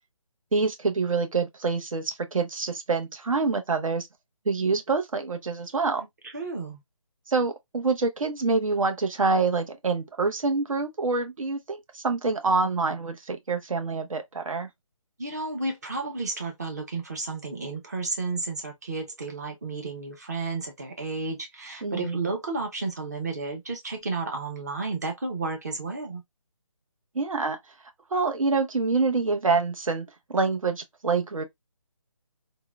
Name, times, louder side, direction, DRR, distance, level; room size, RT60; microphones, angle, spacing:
voice 1, 0.5-4.1 4.5-6.0 7.3-14.7 21.8-22.2 27.1-27.6 28.1-30.0 30.3-31.4, right 4 dB, 80° right, 0.8 m, -26 dB
voice 2, 6.0-6.8 15.2-26.2, right 3 dB, 30° right, 0.6 m, -32 dB
3.7 x 2.1 x 2.2 m
figure-of-eight pair, 170°, 17 cm